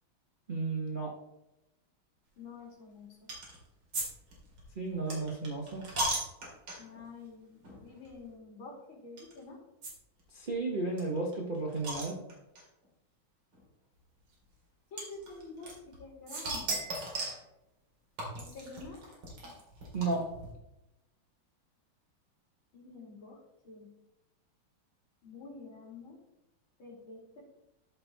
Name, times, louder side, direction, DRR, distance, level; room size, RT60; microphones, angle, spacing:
voice 1, 0.5-1.1 4.8-5.8 10.3-12.2 19.9-20.3, right 3 dB, 35° right, -2 dB, 0.8 m, -33 dB
voice 2, 2.4-3.3 6.8-9.6 14.9-16.8 18.3-19.0 22.7-23.9 25.2-26.2 26.8-27.4, left 3 dB, 75° left, -3 dB, 3.4 m, -48 dB
sound 1, 3.3-3.6 3.9-4.1 4.3-7.0 7.6-8.1 9.2-9.3 9.8-9.9 10.2-10.3 10.5-10.6 11.0-12.6 13.5-13.6 15.0-16.0 16.3-17.4 18.2-20.5, right 2 dB, 80° right, 3.1 m, -37 dB
13.5 x 4.6 x 3.9 m, 0.92 s
omnidirectional pair, 2.3 m